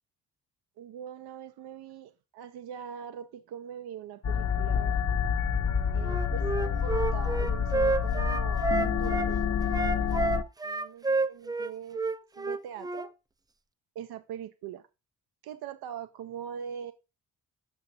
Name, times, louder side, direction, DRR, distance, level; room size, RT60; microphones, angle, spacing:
voice 1, 0.8-5.1 5.9-9.4 9.7-10.3 10.6-12.0 12.4-13.1 14.0-14.8 15.4-16.9, right 9 dB, 80° right, 0.6 m, -42 dB
sound 1, 4.2-10.4, left 7 dB, 45° left, 0.6 m, -28 dB
Wind instrument woodwind instrument, 6.0-9.3 9.7-13.1, right 3 dB, 10° right, 0.3 m, -30 dB
7.0 x 5.8 x 2.6 m
cardioid pair, 65°, 38 cm